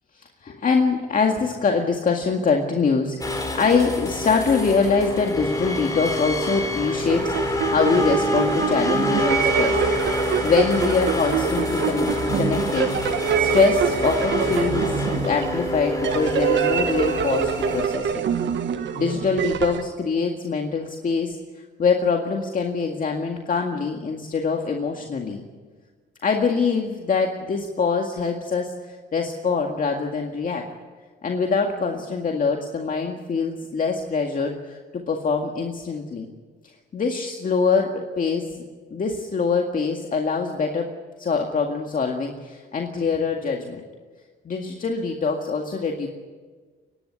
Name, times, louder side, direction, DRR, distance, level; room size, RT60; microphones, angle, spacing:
voice 1, 0.4-9.8 10.1-13.0 13.4-18.2 19.0-21.4 21.8-25.4 26.2-28.7 29.1-30.7 31.2-36.3 36.9-38.6 38.9-40.9 41.2-43.8 44.5-46.1, left 5 dB, 45° left, 2 dB, 2.0 m, -24 dB
sound 1, 3.2-17.9, left 1 dB, 15° left, 3.6 m, -27 dB
sound 2, 7.0-19.8, right 7 dB, 65° right, 1.5 m, -25 dB
25.0 x 11.5 x 9.7 m, 1.4 s
cardioid pair, 90°, 20 cm